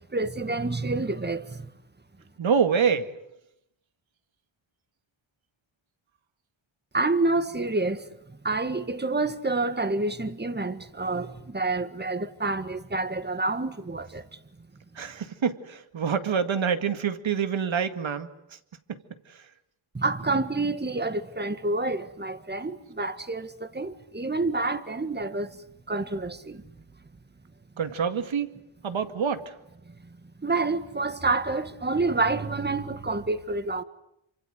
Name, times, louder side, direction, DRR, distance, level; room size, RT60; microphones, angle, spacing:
voice 1, 0.1-1.7 6.9-14.2 14.6-14.7 19.9-26.6 29.8-29.9 30.4-33.8, right 3 dB, 20° right, 1.7 m, -28 dB
voice 2, 2.4-3.1 15.0-18.3 19.3-19.4 27.8-28.5 28.8-29.5, right 6 dB, 75° right, 2.1 m, -26 dB
27.5 x 25.5 x 7.9 m
wide cardioid pair, 100°, 47 cm